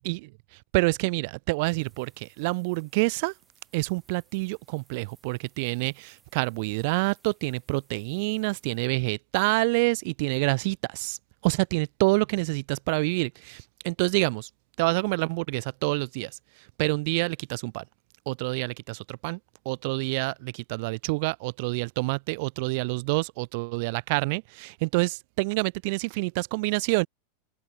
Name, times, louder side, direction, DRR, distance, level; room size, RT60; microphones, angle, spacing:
voice 1, 0.7-3.3 3.7-11.2 11.4-14.5 14.8-16.3 16.8-17.8 18.3-19.4 19.7-27.1, right 28 dB, 45° right, 0.4 m, -27 dB
sound 1, 1.6-8.9, right 5 dB, 15° right, 6.8 m, -65 dB
figure-of-eight pair, 90°, 0 cm